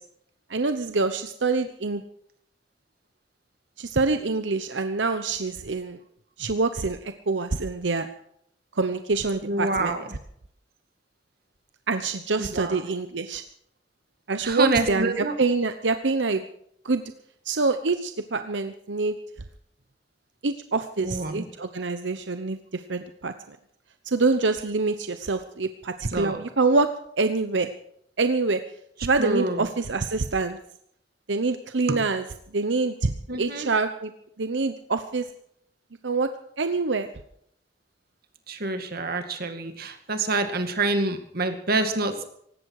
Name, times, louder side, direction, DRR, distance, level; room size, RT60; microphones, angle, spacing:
voice 1, 0.5-2.0 3.8-6.0 6.4-8.1 8.7-9.9 11.9-13.4 14.3-16.4 16.8-17.0 17.5-19.2 20.4-23.6 24.0-26.9 27.2-27.7 28.2-28.6 29.0-30.6 31.3-32.2 32.5-34.1 34.4-35.3 36.0-36.3 36.6-37.1, right 3 dB, 85° right, 9 dB, 0.9 m, -25 dB
voice 2, 9.4-10.1 12.4-12.8 14.4-15.3 21.0-21.4 26.1-26.5 29.2-29.7 31.9-32.0 33.3-33.7 38.5-42.2, right 2 dB, 60° right, 7 dB, 2.3 m, -27 dB
18.5 x 16.0 x 4.8 m, 0.69 s
head